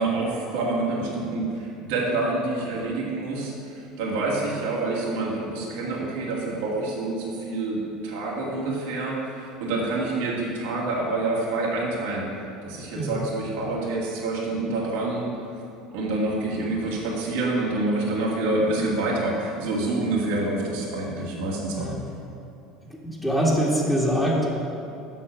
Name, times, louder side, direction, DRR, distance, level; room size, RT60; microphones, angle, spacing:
voice 1, 0.0-12.3 12.6-15.3 15.9-21.9, right 2 dB, 75° right, -4 dB, 1.9 m, -27 dB
voice 2, 23.2-24.5, equal, 10° left, -3 dB, 2.0 m, -23 dB
7.5 x 6.2 x 6.0 m, 2.6 s
hypercardioid pair, 75°, 0 cm